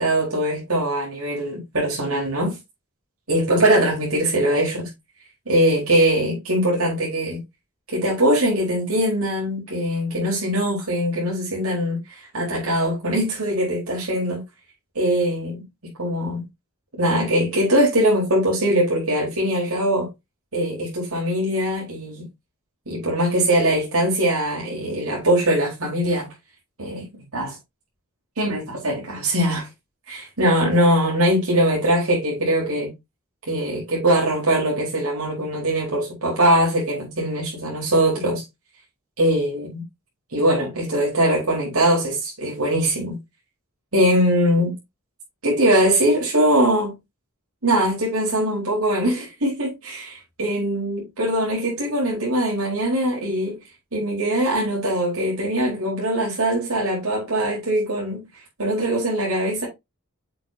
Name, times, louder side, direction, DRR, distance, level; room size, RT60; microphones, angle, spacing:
voice 1, 0.0-2.6 3.3-4.9 5.5-7.4 7.9-14.4 14.9-16.4 17.0-20.1 20.5-22.3 22.9-26.3 26.8-27.1 27.3-27.6 28.4-29.7 30.1-32.9 33.5-38.4 39.2-39.8 40.3-43.2 43.9-44.7 45.4-46.9 47.6-53.6 53.9-58.2 58.6-59.7, right 1 dB, 65° right, 3.9 m, -21 dB
7.7 x 6.4 x 2.7 m
head